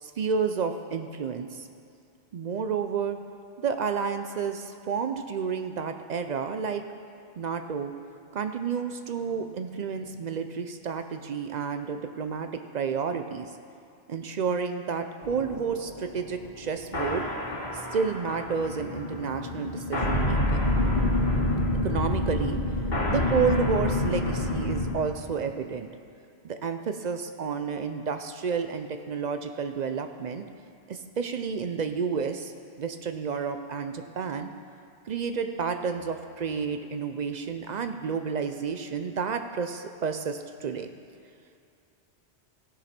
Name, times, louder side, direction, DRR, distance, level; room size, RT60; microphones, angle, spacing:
voice 1, 0.0-1.7 2.3-3.2 3.6-6.8 7.4-7.9 8.3-13.5 14.1-17.3 17.7-20.7 21.8-22.6 23.1-25.9 26.4-30.5 30.9-34.5 35.1-40.9, right 6 dB, 60° right, 7 dB, 0.4 m, -30 dB
sound 1, 15.2-24.9, left 1 dB, 40° left, 1.4 m, -28 dB
15.5 x 6.2 x 4.4 m, 2.5 s
omnidirectional pair, 1.2 m